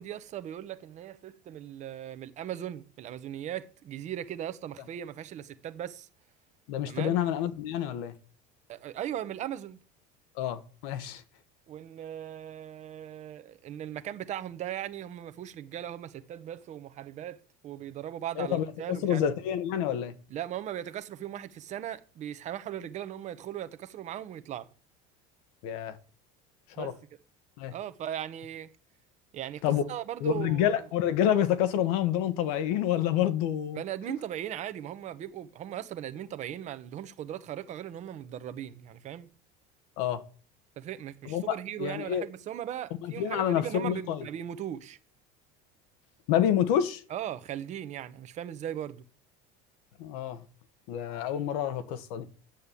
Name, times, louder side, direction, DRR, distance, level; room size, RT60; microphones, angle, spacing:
voice 1, 0.0-6.1 6.9-7.2 8.7-9.8 11.7-17.4 17.6-19.2 20.3-24.7 26.8-27.0 27.7-28.7 29.3-30.7 33.7-39.3 40.8-45.0 47.1-49.0, right 11 dB, 35° right, 1.1 m, -38 dB
voice 2, 6.7-8.1 10.4-11.2 18.4-20.2 25.6-26.0 26.8-26.9 27.6-27.7 29.6-29.8 30.2-33.8 40.0-40.2 41.3-42.3 43.0-44.3 46.3-47.0 50.0-50.4 50.9-52.3, left 10 dB, 75° left, 1.6 m, -28 dB
10.0 x 7.5 x 8.4 m
cardioid pair, 155°, 19 cm